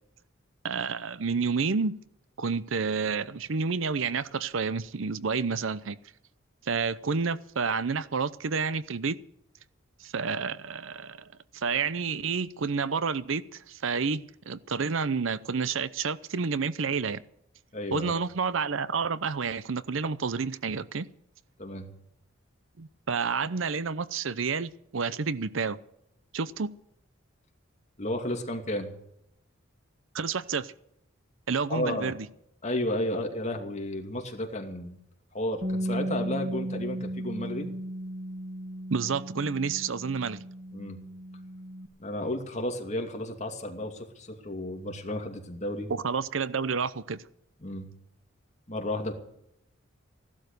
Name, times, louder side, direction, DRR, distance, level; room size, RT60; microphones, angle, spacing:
voice 1, 0.6-2.0 2.4-6.0 6.6-9.2 10.0-11.3 11.5-17.2 17.9-21.1 22.8-25.8 26.3-26.7 30.1-30.7 31.5-32.3 38.9-40.4 45.9-47.2, right 5 dB, 70° right, 17 dB, 0.7 m, -29 dB
voice 2, 17.7-18.1 21.6-21.9 28.0-28.9 31.7-32.1 32.6-35.0 35.3-37.7 40.7-41.0 42.0-45.9 47.6-47.9 48.7-49.1, left 1 dB, 35° left, 3 dB, 2.5 m, -32 dB
Bass guitar, 35.6-41.9, equal, 45° right, 1.4 m, -35 dB
16.0 x 12.0 x 6.7 m, 0.76 s
head